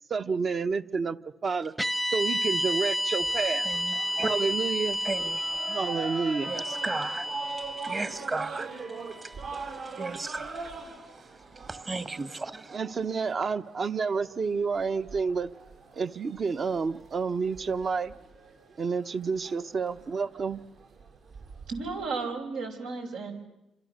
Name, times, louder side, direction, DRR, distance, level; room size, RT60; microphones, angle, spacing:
voice 1, 0.1-1.7 2.0-3.7 4.2-5.0 5.7-6.5 12.7-15.5 15.9-18.1 18.8-20.6, right 5 dB, 45° right, 1.1 m, -29 dB
sound 1, 1.8-10.1, equal, 5° right, 0.9 m, -32 dB
sound 2, 3.2-22.1, right 4 dB, 65° right, 6.4 m, -43 dB
voice 2, 3.6-4.3 5.0-5.5 6.5-7.3 7.6-8.8 9.2-11.0 11.5-12.8, right 3 dB, 30° right, 1.6 m, -35 dB
voice 3, 21.7-23.3, right 4 dB, 85° right, 5.5 m, -33 dB
28.0 x 26.5 x 6.6 m
cardioid pair, 90°, 0 cm